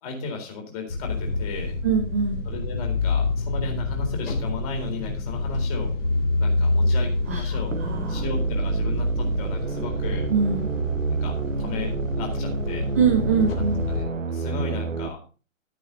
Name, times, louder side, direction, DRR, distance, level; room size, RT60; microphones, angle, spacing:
voice 1, 0.0-1.8 2.4-5.9 6.4-7.7 8.1-10.3 11.1-11.9 12.2-12.9 13.9-15.2, left 3 dB, 30° left, 2 dB, 3.9 m, -35 dB
sound 1, 0.9-14.0, left 3 dB, 45° left, 3.5 m, -27 dB
voice 2, 1.8-2.4 7.3-8.2 10.3-10.7 13.0-13.8, right 6 dB, 10° right, 2 dB, 0.6 m, -23 dB
sound 2, 7.7-15.1, right 4 dB, 70° right, 1.1 m, -28 dB
13.0 x 8.7 x 4.0 m, 0.35 s
figure-of-eight pair, 130°, 40 cm